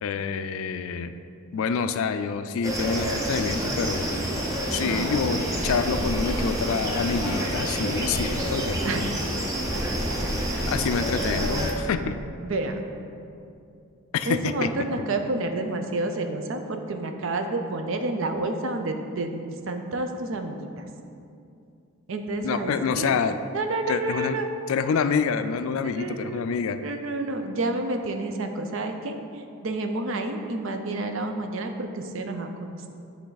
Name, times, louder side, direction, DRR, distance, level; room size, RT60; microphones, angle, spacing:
voice 1, 0.0-1.1 1.5-4.2 4.7-9.1 10.7-12.2 14.1-14.7 22.4-23.4 23.9-24.4 24.7-26.8, left 5 dB, 65° left, 10 dB, 0.3 m, -27 dB
sound 1, 2.6-11.7, right 1 dB, 15° right, 0.7 m, -28 dB
voice 2, 4.8-5.2 8.8-9.0 10.0-10.2 12.4-12.8 14.3-20.9 22.1-23.1 23.5-24.5 25.8-26.4 26.8-32.8, right 2 dB, 60° right, 5 dB, 0.5 m, -29 dB
10.0 x 3.4 x 4.0 m, 2.5 s
head